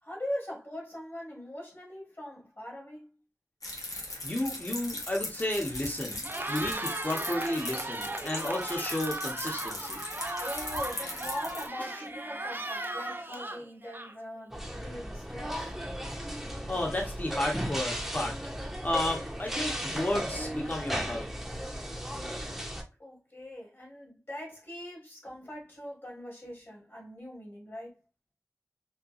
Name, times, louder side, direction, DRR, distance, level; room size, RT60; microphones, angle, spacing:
voice 1, 0.0-3.2 10.4-15.7 23.0-28.0, equal, 45° left, 2.0 m, -41 dB
sound 1, 3.6-11.7, left 1 dB, 85° left, 1.0 m, -39 dB
voice 2, 4.2-6.2 6.5-10.0 11.8-12.0 16.7-18.3 18.8-21.3, left 1 dB, 30° left, 1.1 m, -32 dB
Cheering, 6.1-14.4, right 1 dB, 35° right, 0.6 m, -37 dB
sound 2, 14.5-22.8, equal, 5° right, 0.8 m, -36 dB
4.3 x 2.2 x 2.5 m
wide cardioid pair, 40°, 6 cm